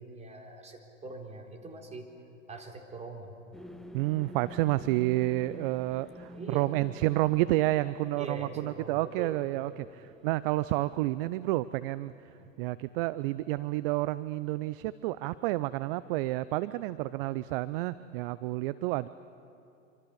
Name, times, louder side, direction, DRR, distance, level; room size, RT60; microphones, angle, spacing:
voice 1, 0.0-2.1 2.5-3.4 6.3-6.8 8.2-9.8 12.4-12.5, right 3 dB, 15° right, 2 dB, 3.9 m, -43 dB
sound 1, 3.5-12.7, equal, ahead, 0.7 m, -50 dB
voice 2, 3.9-9.8 10.2-12.1 12.6-19.1, right 17 dB, 45° right, 16 dB, 0.6 m, -30 dB
26.5 x 26.0 x 7.1 m, 2.8 s
hypercardioid pair, 100°, 40 cm